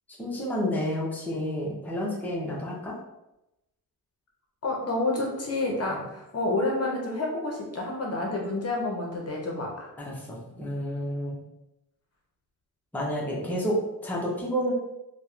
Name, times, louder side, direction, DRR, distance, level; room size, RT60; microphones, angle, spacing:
voice 1, 0.2-2.9 5.9-6.0 10.0-11.4 12.9-14.7, equal, 5° left, -4 dB, 0.6 m, -30 dB
voice 2, 4.6-9.9, left 2 dB, 40° left, -1 dB, 0.7 m, -29 dB
2.7 x 2.1 x 2.4 m, 0.92 s
cardioid pair, 70°, 39 cm